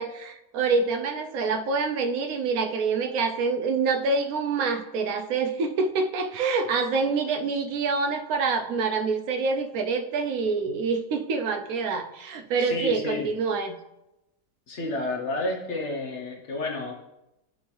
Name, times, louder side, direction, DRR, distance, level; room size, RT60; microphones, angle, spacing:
voice 1, 0.0-13.8, right 4 dB, 65° right, 6 dB, 1.0 m, -26 dB
voice 2, 12.6-13.3 14.7-16.9, left 2 dB, 45° left, 1 dB, 1.1 m, -30 dB
11.5 x 4.4 x 3.3 m, 0.92 s
omnidirectional pair, 1.9 m